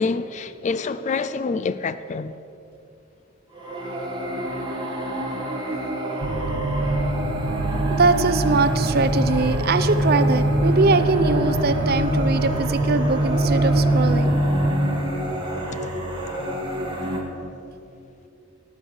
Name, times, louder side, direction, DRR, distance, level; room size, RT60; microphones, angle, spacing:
voice 1, 0.0-2.3 15.7-16.0, left 4 dB, 35° left, 0.4 m, -27 dB
sound 1, 3.5-17.2, right 1 dB, 25° right, 2.1 m, -29 dB
sound 2, 6.2-14.7, right 1 dB, 85° right, 1.2 m, -23 dB
voice 2, 7.9-14.4, right 3 dB, 50° right, 0.6 m, -22 dB
18.0 x 6.4 x 7.2 m
head